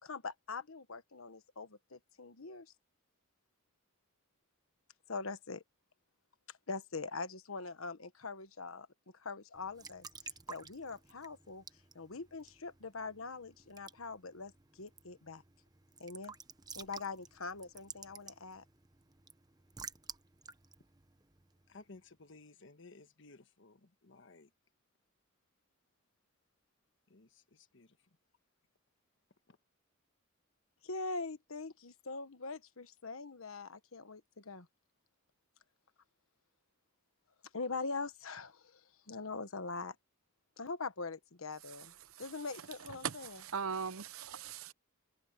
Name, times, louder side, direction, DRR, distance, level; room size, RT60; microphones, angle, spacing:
voice 1, 0.0-2.7 5.1-5.6 6.7-8.9 9.1-10.1 10.5-11.6 11.9-15.4 16.0-16.3 16.7-18.6 30.8-34.7 37.5-38.8 39.1-40.0 40.6-41.9 42.2-43.4, left 4 dB, 80° left, 1.3 m, -43 dB
Raindrop / Drip / Trickle dribble, 9.5-22.0, right 5 dB, 20° right, 1.0 m, -53 dB
voice 2, 21.7-24.5 27.1-28.0, left 3 dB, 65° left, 1.4 m, -57 dB
voice 3, 43.0-44.7, right 6 dB, 85° right, 0.8 m, -40 dB
head